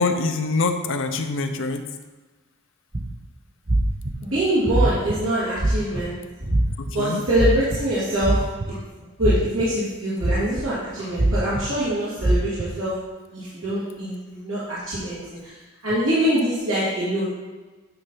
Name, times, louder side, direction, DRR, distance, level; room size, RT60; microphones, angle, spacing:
voice 1, 0.0-1.9 7.0-7.2, left 3 dB, 60° left, 6 dB, 0.6 m, -24 dB
sound 1, 2.9-3.1 3.7-4.1 4.7-5.2 5.6-6.0 6.5-6.9 7.3-7.8 8.2-8.9 9.2-9.6 10.2-10.6 11.2-11.6 12.2-12.7, right 1 dB, 30° right, 0.7 m, -21 dB
voice 2, 4.2-6.5 6.9-8.4 9.2-12.9 13.3-15.5 15.8-17.2, right 1 dB, 65° right, -11 dB, 2.4 m, -24 dB
9.2 x 3.3 x 5.5 m, 1.3 s
head